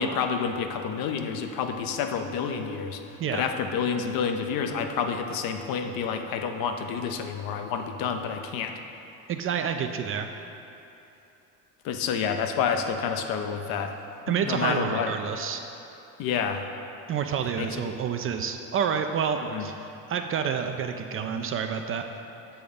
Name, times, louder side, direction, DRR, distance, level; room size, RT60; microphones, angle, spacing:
voice 1, 0.0-3.0 3.3-8.7 11.8-13.9 14.3-15.1 16.2-16.6 17.6-17.9 19.5-19.7, left 6 dB, 60° left, 5 dB, 0.7 m, -29 dB
voice 2, 9.3-10.3 14.3-15.6 17.1-22.0, right 7 dB, 35° right, 6 dB, 0.4 m, -29 dB
7.0 x 3.8 x 5.2 m, 2.9 s
hypercardioid pair, 70°, 40 cm